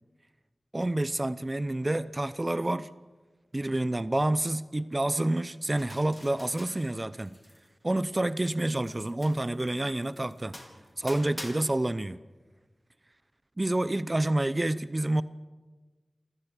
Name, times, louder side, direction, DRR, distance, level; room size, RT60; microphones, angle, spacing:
voice 1, 0.7-2.9 3.5-7.4 7.8-10.6 11.0-12.2 13.6-15.2, right 1 dB, 30° right, 15 dB, 0.8 m, -28 dB
sound 1, 5.8-7.7 8.0-11.5, left 1 dB, 10° left, 4.4 m, -47 dB
28.5 x 14.5 x 9.1 m, 1.3 s
cardioid pair, 50°, 0 cm